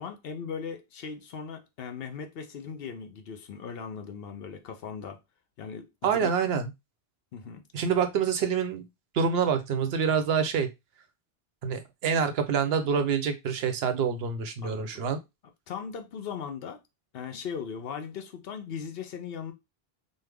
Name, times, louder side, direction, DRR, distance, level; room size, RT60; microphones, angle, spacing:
voice 1, 0.0-5.2 5.6-6.3 7.3-7.6 14.6-14.9 15.7-16.8 17.1-19.5, left 6 dB, 70° left, 0.8 m, -38 dB
voice 2, 6.0-6.7 7.7-8.9 9.1-10.7 11.6-15.2, right 6 dB, 70° right, 0.8 m, -26 dB
3.2 x 2.1 x 3.3 m
omnidirectional pair, 1.1 m